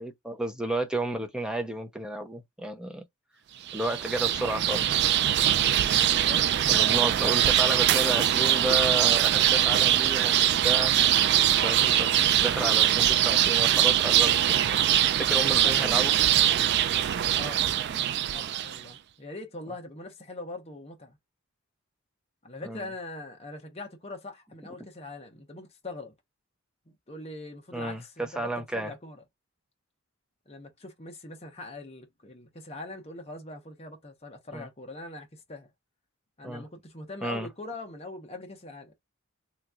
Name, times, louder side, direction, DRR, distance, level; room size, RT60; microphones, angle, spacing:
voice 1, 0.0-3.0 3.7-5.0 5.4-5.8 6.7-10.9 11.5-14.6 15.2-16.3 22.6-22.9 27.7-28.9 34.5-34.7 36.4-36.7 37.2-37.5, right 1 dB, 5° right, 0.6 m, -32 dB
sound 1, 3.7-18.8, right 11 dB, 50° right, 0.3 m, -23 dB
voice 2, 6.2-7.2 11.4-11.6 15.5-16.2 17.3-17.6 18.1-21.2 22.4-26.1 26.9-29.2 30.5-35.7 36.4-38.9, left 2 dB, 30° left, 1.0 m, -42 dB
3.3 x 3.0 x 2.4 m
head